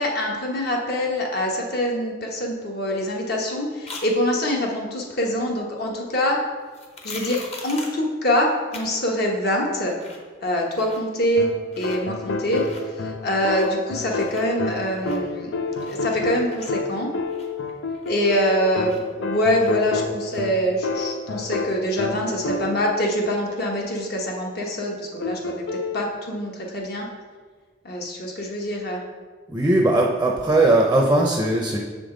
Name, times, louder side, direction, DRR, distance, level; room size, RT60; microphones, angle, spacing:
voice 1, 0.0-6.4 7.0-10.0 10.4-11.5 11.8-12.6 13.0-15.5 15.9-17.1 18.0-27.1 27.8-29.0, equal, 60° left, 0 dB, 1.1 m, -24 dB
sound 1, 3.9-4.1 6.7-8.0 8.7-8.9 9.2-9.3 9.7-10.3 10.6-11.2 11.6-12.0 12.4-12.8 13.3-13.9 14.1-16.2 16.5-19.2 19.5-20.6 21.0-21.1, left 3 dB, 35° left, 0.9 m, -41 dB
sound 2, 11.4-23.0 25.2-26.0, left 3 dB, 90° left, 0.5 m, -29 dB
voice 2, 29.5-31.8, right 2 dB, 10° right, 0 dB, 0.5 m, -19 dB
6.6 x 5.2 x 3.8 m, 1.5 s
head